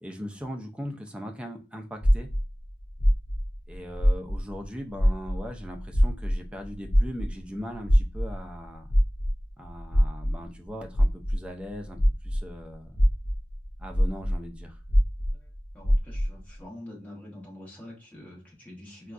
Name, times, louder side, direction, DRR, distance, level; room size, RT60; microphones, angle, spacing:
voice 1, 0.0-2.3 3.7-8.9 9.6-12.0 12.2-13.0 13.8-14.8, equal, 5° right, 3 dB, 0.4 m, -39 dB
sound 1, 2.0-4.7 4.9-12.5 12.9-16.4, equal, 40° left, 0.6 m, -24 dB
voice 2, 15.7-19.1, left 1 dB, 10° left, -4 dB, 1.2 m, -45 dB
3.7 x 2.3 x 2.4 m, 0.33 s
head